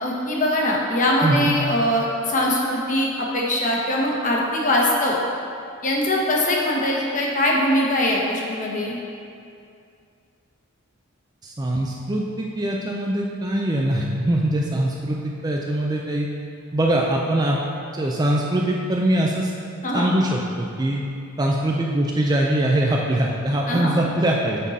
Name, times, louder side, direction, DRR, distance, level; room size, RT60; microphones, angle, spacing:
voice 1, 0.0-5.2 5.8-9.0 19.8-20.1 23.7-23.9, left 1 dB, 35° left, -3 dB, 1.0 m, -22 dB
voice 2, 1.2-1.5 11.4-16.3 16.7-17.6 17.9-19.5 19.9-21.0 21.4-24.6, right 1 dB, 20° right, -1 dB, 0.4 m, -22 dB
7.3 x 5.5 x 4.1 m, 2.5 s
head